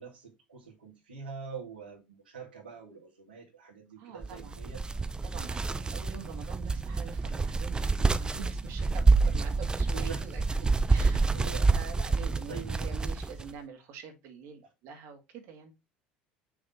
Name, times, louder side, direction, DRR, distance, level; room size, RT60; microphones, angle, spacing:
voice 1, 0.0-4.8 5.6-5.9 8.9-9.1 9.9-10.6 11.3-11.7 12.5-12.7, right 5 dB, 85° right, 2.3 m, -45 dB
voice 2, 4.0-4.6 5.2-11.4 11.7-15.7, right 6 dB, 60° right, 2.1 m, -46 dB
sound 1, 4.2-13.5, right 3 dB, 15° right, 0.7 m, -27 dB
6.3 x 3.5 x 5.8 m
hypercardioid pair, 70°, 5 cm